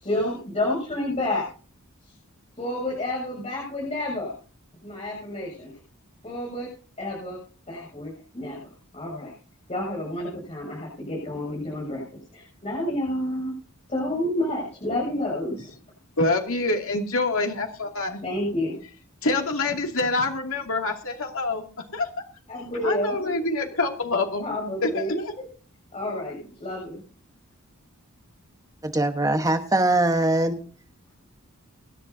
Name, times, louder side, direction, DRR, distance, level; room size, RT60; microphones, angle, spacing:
voice 1, 0.0-1.5 2.6-4.3 4.8-5.7 6.2-6.7 7.0-7.4 7.7-9.3 9.7-12.0 12.3-13.5 13.9-15.7 18.2-18.8 22.5-23.3 24.4-25.4 25.9-27.0, left 1 dB, 30° left, 7.1 m, -29 dB
voice 2, 16.2-18.2 19.2-21.6 21.9-22.1 22.8-24.5 24.8-25.3, left 2 dB, 70° left, 2.5 m, -26 dB
voice 3, 28.8-30.6, right 2 dB, 15° right, 1.2 m, -22 dB
25.5 x 11.0 x 2.8 m
head